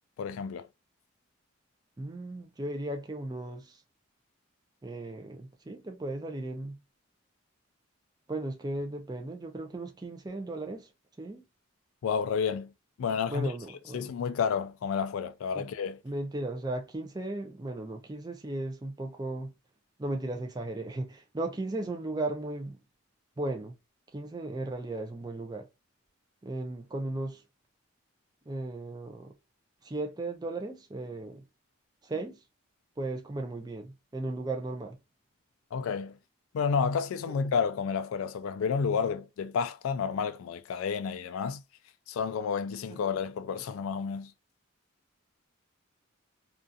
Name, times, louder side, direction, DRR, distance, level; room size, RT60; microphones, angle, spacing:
voice 1, 0.2-0.7 12.0-12.7 13.0-13.5 13.9-16.0 35.7-36.2 36.5-41.6 42.1-44.3, left 6 dB, 75° left, 0.3 m, -30 dB
voice 2, 2.0-3.8 4.8-6.8 8.3-10.9 11.2-11.4 13.3-14.2 15.5-15.7 16.0-19.5 20.0-22.8 23.4-23.7 24.1-25.7 26.4-27.4 28.5-29.3 29.8-31.4 32.0-32.4 33.0-35.0 37.3-37.4 42.9-43.0, right 2 dB, 20° right, 0.4 m, -36 dB
2.4 x 2.3 x 2.5 m
head